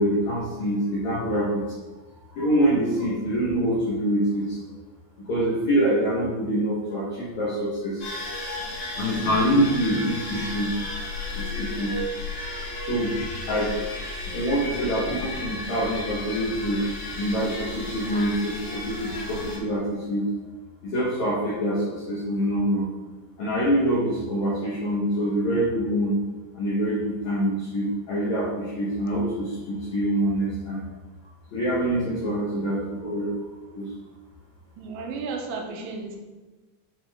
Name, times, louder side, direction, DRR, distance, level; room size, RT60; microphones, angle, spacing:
voice 1, 0.0-1.7 2.3-4.6 5.2-8.1 8.4-10.7 11.3-11.9 12.7-13.1 13.5-13.7 14.2-16.8 17.1-20.3 20.8-22.9 23.4-26.2 26.5-30.9 31.5-33.9, equal, 75° left, -7 dB, 1.7 m, -25 dB
sound 1, 8.0-19.6, left 2 dB, 60° left, 2.9 m, -33 dB
voice 2, 34.8-36.2, right 4 dB, 85° right, 2 dB, 3.0 m, -33 dB
9.3 x 3.8 x 3.5 m, 1.2 s
omnidirectional pair, 5.0 m